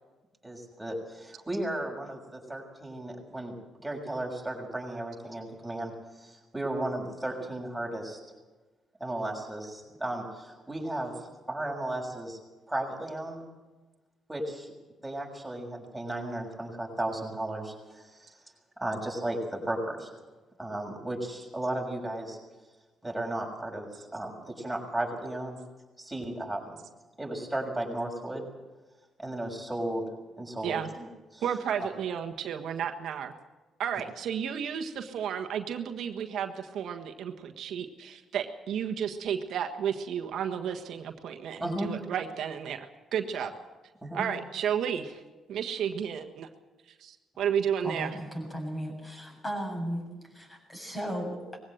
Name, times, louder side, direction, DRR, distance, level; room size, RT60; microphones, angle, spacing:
voice 1, 0.4-3.5 3.8-8.2 9.0-11.2 11.5-12.4 12.7-13.5 14.3-14.7 15.0-18.4 18.8-20.1 20.6-22.4 23.0-25.6 26.0-26.8 27.2-28.5 29.2-30.1 30.4-31.4 41.6-41.9 44.0-44.2, right 1 dB, 5° right, -1 dB, 6.6 m, -35 dB
voice 2, 31.4-33.3 33.8-43.5 44.1-45.2 45.5-46.5 47.0-48.2, right 8 dB, 75° right, 5 dB, 1.5 m, -32 dB
voice 3, 47.8-51.6, equal, 20° left, 2 dB, 7.4 m, -36 dB
20.5 x 16.5 x 7.9 m, 1.2 s
cardioid pair, 90°, 0 cm